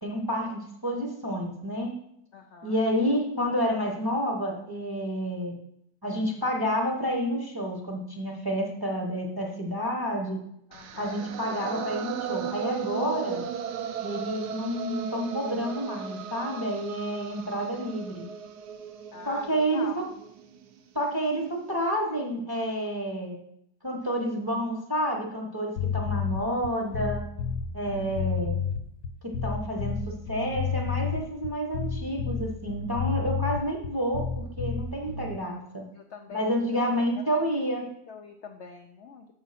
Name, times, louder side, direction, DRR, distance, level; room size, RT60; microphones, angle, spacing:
voice 1, 0.0-1.9 2.6-5.5 6.0-10.4 11.0-13.4 14.0-18.2 19.3-20.0 20.9-23.4 23.8-27.3 27.7-28.6 29.2-35.8 36.3-37.8, equal, 20° right, 0 dB, 0.8 m, -29 dB
voice 2, 2.3-2.8 10.7-11.2 19.1-20.0 35.9-36.5 37.3-37.4 37.8-39.3, left 6 dB, 85° left, 5 dB, 0.6 m, -44 dB
sound 1, 10.7-20.8, right 8 dB, 70° right, 1.2 m, -36 dB
sound 2, 25.8-35.4, left 7 dB, 65° left, 1.2 m, -30 dB
6.9 x 5.6 x 5.8 m, 0.75 s
omnidirectional pair, 1.9 m